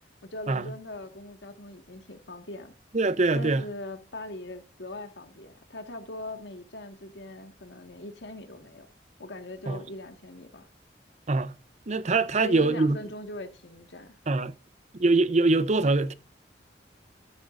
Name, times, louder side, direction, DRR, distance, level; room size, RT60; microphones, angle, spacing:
voice 1, 0.2-2.7 3.3-8.9 9.2-10.7 12.4-14.2, left 1 dB, 70° left, 1.7 m, -41 dB
voice 2, 2.9-3.6 9.7-9.8 11.3-11.5 11.9-13.0 14.3-14.5 14.9-16.1, right 3 dB, 40° right, 0.7 m, -23 dB
13.0 x 11.0 x 2.6 m
head